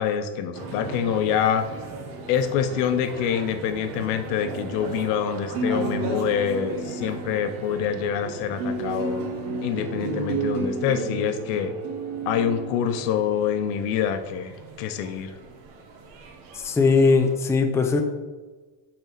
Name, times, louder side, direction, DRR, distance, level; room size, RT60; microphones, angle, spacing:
voice 1, 0.0-1.7 2.3-9.3 9.6-11.7 12.3-15.3, left 8 dB, 85° left, 9 dB, 0.9 m, -26 dB
sound 1, 0.5-17.3, right 3 dB, 80° right, 1.6 m, -33 dB
voice 2, 16.5-18.0, left 4 dB, 5° left, 5 dB, 0.4 m, -19 dB
9.0 x 4.3 x 4.0 m, 1.3 s
cardioid pair, 135°, 46 cm